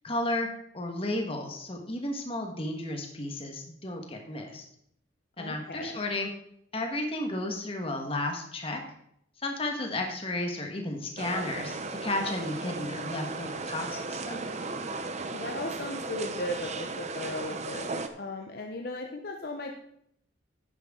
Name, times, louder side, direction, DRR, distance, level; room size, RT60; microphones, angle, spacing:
voice 1, 0.0-0.5 0.7-4.6 5.4-6.3 6.7-8.8 9.4-14.4, left 1 dB, 30° left, 3 dB, 1.6 m, -33 dB
voice 2, 5.4-6.0 15.3-17.9 18.2-19.7, left 2 dB, 50° left, 2 dB, 0.9 m, -36 dB
sound 1, 11.2-18.1, right 3 dB, 35° right, 0.7 m, -36 dB
10.5 x 9.7 x 3.8 m, 0.72 s
head